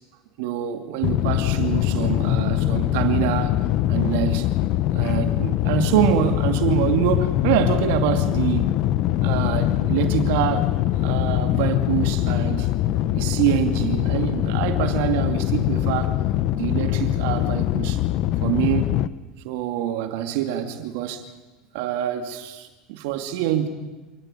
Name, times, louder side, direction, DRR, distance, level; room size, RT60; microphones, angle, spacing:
voice 1, 0.4-3.6 3.9-4.5 4.9-8.7 9.2-10.7 11.0-12.7 13.1-16.1 16.5-18.0 18.4-18.9 19.4-21.2 21.7-23.7, right 11 dB, 75° right, 2.5 m, -25 dB
sound 1, 1.0-19.1, left 13 dB, 55° left, 0.9 m, -23 dB
27.5 x 18.5 x 9.1 m
supercardioid pair, 120°, 0 cm